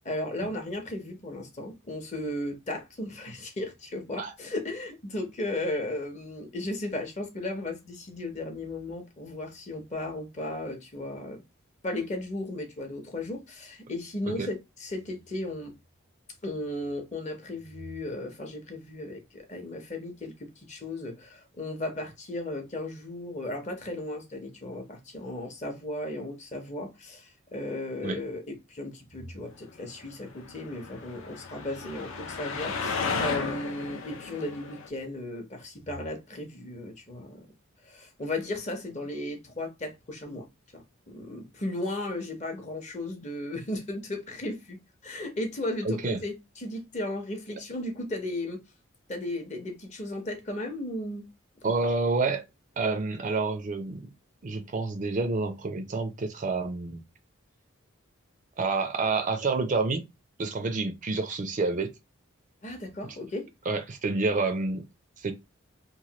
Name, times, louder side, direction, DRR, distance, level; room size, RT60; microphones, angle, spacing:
voice 1, 0.0-11.4 11.8-15.7 16.4-37.4 37.8-40.5 40.7-48.6 49.1-51.3 51.8-51.9 62.6-63.5, left 1 dB, 35° left, 0.7 m, -35 dB
sound 1, 30.2-34.9, left 5 dB, 70° left, 0.4 m, -34 dB
voice 2, 45.8-46.2 51.6-52.5 52.8-54.1 54.4-57.0 58.6-60.0 60.4-61.9 63.7-64.8 65.2-65.3, right 3 dB, 35° right, 0.4 m, -28 dB
3.1 x 2.1 x 2.8 m
head